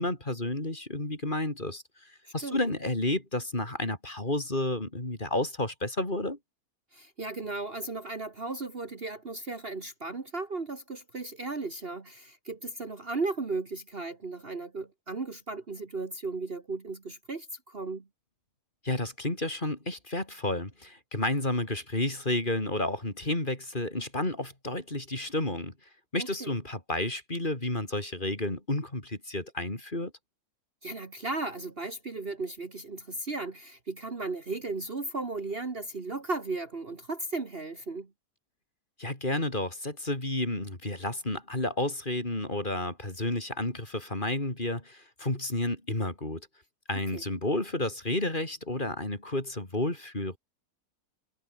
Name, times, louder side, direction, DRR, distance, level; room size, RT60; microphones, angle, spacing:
voice 1, 0.0-6.4 18.8-25.7 26.1-30.1 39.0-46.5 46.9-50.4, left 1 dB, 30° left, 4.3 m, -31 dB
voice 2, 2.3-2.6 6.9-18.1 26.2-26.5 30.8-38.1 47.1-47.2, right 3 dB, 35° right, 1.9 m, -36 dB
omnidirectional pair, 1.7 m